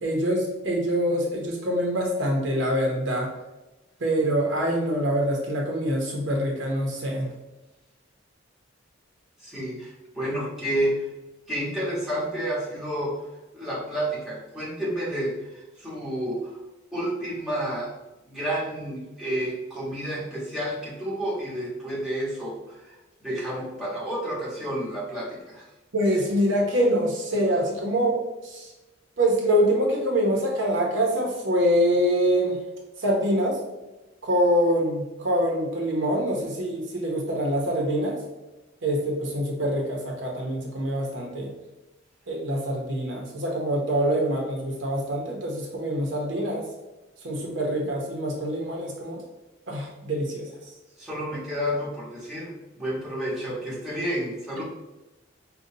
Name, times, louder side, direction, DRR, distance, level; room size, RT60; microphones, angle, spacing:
voice 1, 0.0-3.3 4.0-7.3 25.9-28.7 29.2-32.6 33.0-33.6 34.2-38.2 38.8-41.5 42.3-46.6 47.2-49.2 49.7-50.5, equal, 70° right, 0 dB, 0.8 m, -25 dB
voice 2, 9.4-11.1 11.5-13.3 13.5-16.6 16.9-17.9 18.3-23.0 23.2-25.7 51.0-54.6, right 1 dB, ahead, -8 dB, 1.1 m, -30 dB
5.1 x 2.2 x 2.7 m, 1.1 s
head